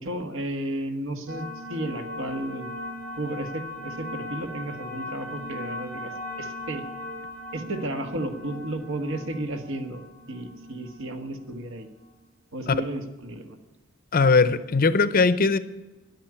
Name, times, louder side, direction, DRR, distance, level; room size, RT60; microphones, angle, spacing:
voice 1, 0.0-2.7 3.1-6.8 7.5-10.0 10.3-11.9 12.5-13.6, right 1 dB, 65° right, 7 dB, 1.5 m, -33 dB
sound 1, 1.3-12.1, left 1 dB, 80° right, 2.9 m, -39 dB
voice 2, 14.1-15.6, left 4 dB, 45° left, 14 dB, 0.7 m, -20 dB
11.0 x 8.8 x 9.8 m, 1.1 s
head